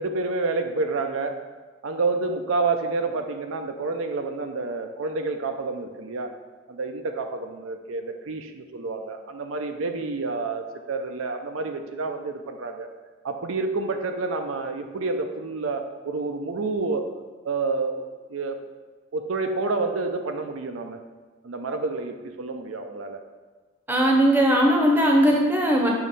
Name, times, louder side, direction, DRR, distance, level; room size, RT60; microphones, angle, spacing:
voice 1, 0.0-1.4 1.8-6.3 6.7-12.9 13.2-17.0 17.4-18.0 18.3-18.6 19.1-21.0 21.4-23.2, right 3 dB, 75° right, 5 dB, 0.5 m, -29 dB
voice 2, 23.9-25.9, equal, 10° right, -1 dB, 0.8 m, -19 dB
7.0 x 3.1 x 5.5 m, 1.3 s
head